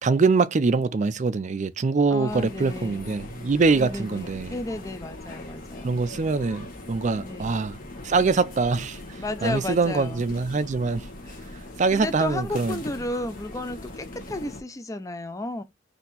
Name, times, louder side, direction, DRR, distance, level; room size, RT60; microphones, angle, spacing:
voice 1, 0.0-4.6 5.8-7.8 8.0-11.1 11.8-12.8, right 4 dB, 45° right, 0.4 m, -24 dB
voice 2, 2.1-3.1 3.7-6.0 7.2-7.6 9.2-10.2 11.9-15.6, left 2 dB, 20° left, 0.6 m, -33 dB
sound 1, 2.3-14.6, left 2 dB, 50° left, 1.5 m, -40 dB
4.2 x 2.8 x 4.1 m
head